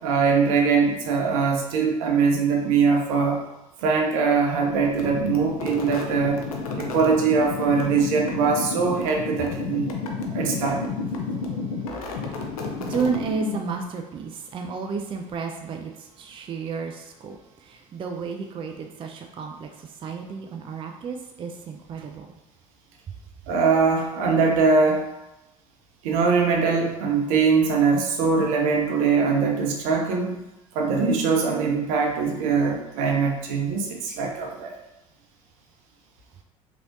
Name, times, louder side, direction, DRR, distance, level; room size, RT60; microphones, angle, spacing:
voice 1, 0.0-3.4 3.8-6.4 6.8-9.9 10.3-10.8 23.5-25.0 26.0-30.5 30.7-34.7, right 5 dB, 70° right, 1 dB, 0.6 m, -22 dB
sound 1, 4.8-13.8, left 4 dB, 85° left, 0.5 m, -31 dB
voice 2, 11.2-11.9 12.3-22.3, right 5 dB, 30° right, 3 dB, 0.4 m, -32 dB
3.0 x 2.8 x 2.6 m, 0.97 s
hypercardioid pair, 70°, 18 cm